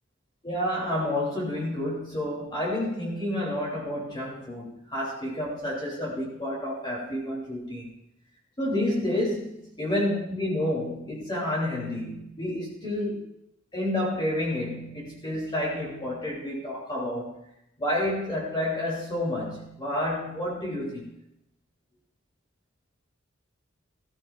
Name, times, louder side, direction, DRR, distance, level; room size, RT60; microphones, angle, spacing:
voice 1, 0.4-7.9 8.6-13.2 13.7-17.4 17.8-21.1, left 1 dB, 25° left, -4 dB, 2.9 m, -29 dB
19.5 x 14.5 x 2.4 m, 0.80 s
head